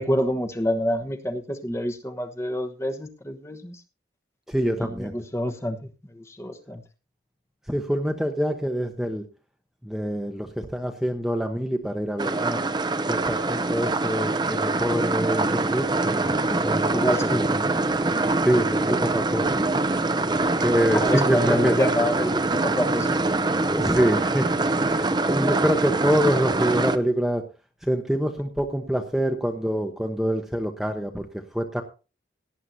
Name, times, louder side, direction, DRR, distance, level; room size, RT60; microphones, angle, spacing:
voice 1, 0.0-3.8 4.8-5.8 6.1-6.8 16.9-17.4 20.9-23.2, equal, 15° left, 6 dB, 1.1 m, -27 dB
voice 2, 4.5-5.1 7.7-9.2 9.8-12.6 13.1-17.6 18.4-19.7 20.6-21.7 23.6-27.5 27.8-31.8, equal, ahead, 4 dB, 0.9 m, -26 dB
sound 1, 12.2-27.0, right 2 dB, 25° right, 0.6 m, -24 dB
17.5 x 10.5 x 2.7 m, 0.33 s
head